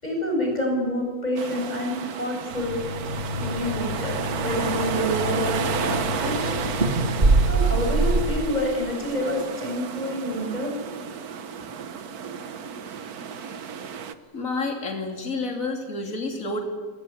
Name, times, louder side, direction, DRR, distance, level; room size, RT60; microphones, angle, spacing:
voice 1, 0.0-2.8 3.4-4.1 4.4-6.8 7.5-10.7, left 1 dB, 30° left, 1 dB, 7.2 m, -28 dB
sound 1, 1.4-14.1, right 7 dB, 85° right, 1.6 m, -32 dB
sound 2, 2.5-8.3, right 2 dB, 35° right, 2.6 m, -25 dB
voice 2, 14.3-16.6, left 3 dB, 65° left, 2 dB, 3.3 m, -29 dB
27.5 x 19.0 x 8.7 m, 1.4 s
omnidirectional pair, 1.5 m